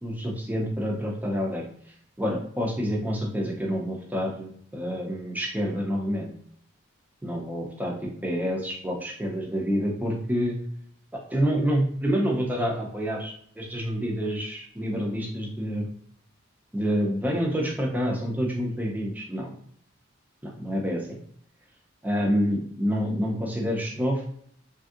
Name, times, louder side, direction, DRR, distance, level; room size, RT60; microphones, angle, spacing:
voice 1, 0.0-1.6 2.2-6.3 7.2-7.9 8.2-10.6 11.1-15.9 16.7-19.5 20.4-21.2 22.0-24.2, equal, 10° right, -1 dB, 0.5 m, -28 dB
3.4 x 2.6 x 2.4 m, 0.62 s
head